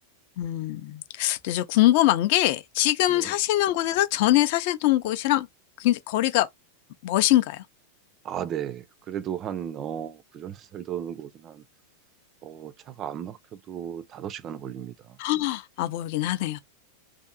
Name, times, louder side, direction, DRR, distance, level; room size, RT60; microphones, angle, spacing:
voice 1, 0.4-5.5 5.8-6.5 7.0-7.6 15.2-16.6, left 15 dB, 50° left, 0.4 m, -23 dB
voice 2, 8.2-11.6 12.4-15.2, right 9 dB, 30° right, 0.3 m, -35 dB
2.6 x 2.5 x 2.3 m
figure-of-eight pair, 90°, 0 cm